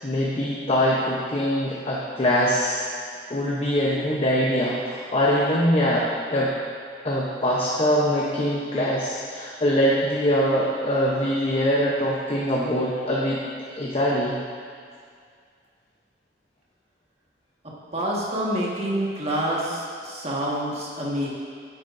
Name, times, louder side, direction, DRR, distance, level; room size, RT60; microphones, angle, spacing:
voice 1, 0.0-2.9 3.3-6.5 7.0-13.4 13.7-14.4, equal, 35° left, -5 dB, 0.8 m, -23 dB
voice 2, 17.9-21.3, right 1 dB, 35° right, -5 dB, 1.6 m, -27 dB
10.0 x 8.9 x 2.6 m, 2.1 s
head